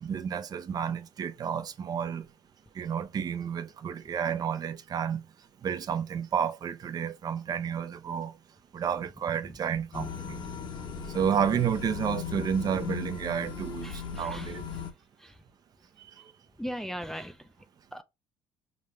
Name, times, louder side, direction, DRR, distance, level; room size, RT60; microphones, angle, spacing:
voice 1, 0.0-2.2 2.7-5.2 5.6-8.3 8.7-10.4 11.1-14.7 16.0-16.1, right 8 dB, 45° right, 0.5 m, -31 dB
sound 1, 9.9-14.9, left 6 dB, 60° left, 0.9 m, -38 dB
voice 2, 13.8-14.6 15.2-15.4 16.6-17.5 17.9-18.0, equal, 5° left, 0.4 m, -39 dB
5.1 x 2.1 x 3.2 m
supercardioid pair, 85°, 10 cm